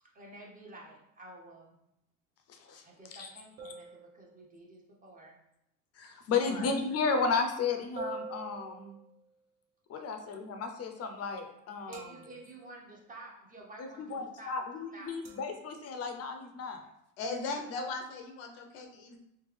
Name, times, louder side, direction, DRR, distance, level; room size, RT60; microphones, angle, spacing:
voice 1, 0.0-1.8 2.8-5.4 10.0-10.1 11.9-14.6 14.9-15.2, right 2 dB, 20° right, -1 dB, 0.8 m, -50 dB
voice 2, 2.5-2.8 3.1-3.3 6.0-9.0 9.9-12.1 13.8-16.9, left 4 dB, 40° left, 5 dB, 0.6 m, -33 dB
sound 1, 3.6-4.7 8.0-9.3 11.9-12.7 15.2-15.6, right 4 dB, 50° right, 0.9 m, -45 dB
voice 3, 6.4-6.8 17.2-19.2, left 3 dB, 80° left, 3 dB, 0.8 m, -38 dB
3.4 x 2.8 x 3.3 m, 0.81 s
supercardioid pair, 110°, 41 cm